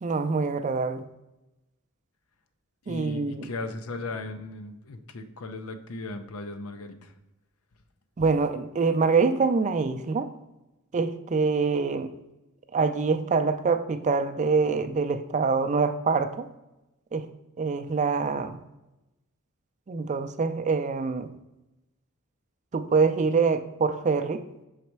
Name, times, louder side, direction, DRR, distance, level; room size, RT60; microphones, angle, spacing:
voice 1, 0.0-1.1 2.9-3.5 8.2-10.3 10.9-12.1 12.7-16.5 17.1-17.3 17.6-18.6 19.9-21.3 22.7-24.4, right 4 dB, 35° right, 10 dB, 0.4 m, -25 dB
voice 2, 2.9-7.1, left 2 dB, 80° left, 8 dB, 0.6 m, -37 dB
6.4 x 4.1 x 4.5 m, 0.96 s
head